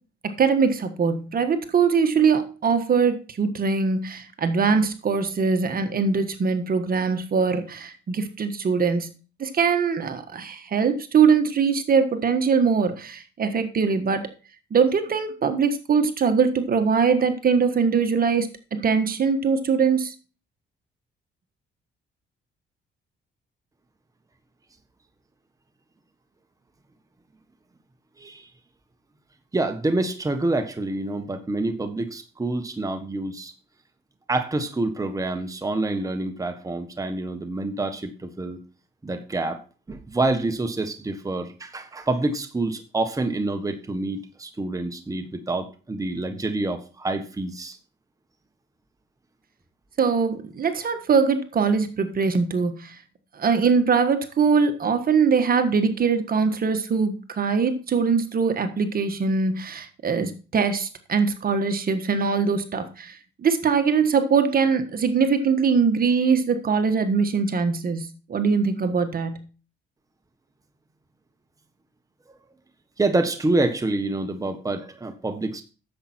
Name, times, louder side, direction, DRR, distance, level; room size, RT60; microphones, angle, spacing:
voice 1, 0.2-9.1 9.4-14.3 14.7-20.1 50.0-53.0 53.3-69.4, right 5 dB, 45° right, 8 dB, 1.5 m, -22 dB
voice 2, 28.2-28.5 29.5-33.5 34.3-38.6 39.0-39.6 39.9-47.8 73.0-75.6, right 2 dB, 15° right, 6 dB, 1.3 m, -27 dB
10.0 x 7.6 x 4.4 m, 0.35 s
cardioid pair, 90°, 20 cm